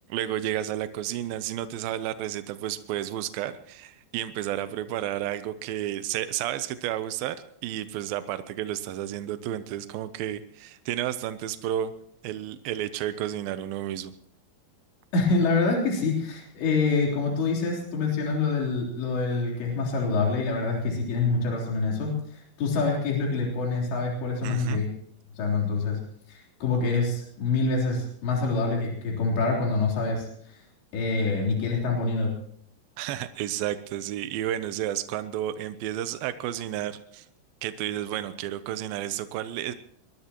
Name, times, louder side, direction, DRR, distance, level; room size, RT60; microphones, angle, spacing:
voice 1, 0.1-7.4 7.6-11.9 12.2-14.1 24.4-24.9 33.0-37.3 37.6-39.7, right 12 dB, 85° right, 12 dB, 2.1 m, -31 dB
voice 2, 15.1-24.9 25.4-26.0 26.3-30.6 30.9-32.3, left 3 dB, 75° left, -2 dB, 5.9 m, -26 dB
23.0 x 21.0 x 3.0 m, 0.67 s
omnidirectional pair, 5.1 m